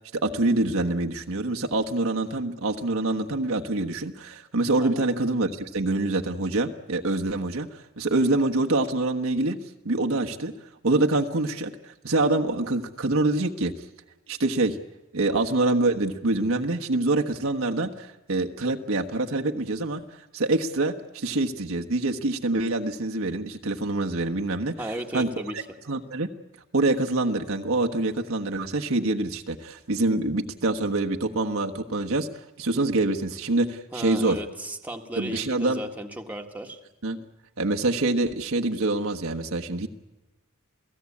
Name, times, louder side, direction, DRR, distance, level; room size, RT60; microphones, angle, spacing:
voice 1, 0.1-9.6 9.8-10.5 10.8-13.7 14.3-14.8 15.1-24.7 25.1-25.3 25.9-26.3 26.7-32.3 32.6-34.4 35.2-35.8 37.0-37.2 37.6-39.9, right 2 dB, 65° right, 3 dB, 1.3 m, -25 dB
voice 2, 24.8-25.6 33.9-36.8, right 1 dB, 5° right, 3 dB, 1.7 m, -35 dB
28.5 x 17.5 x 8.6 m, 1.1 s
head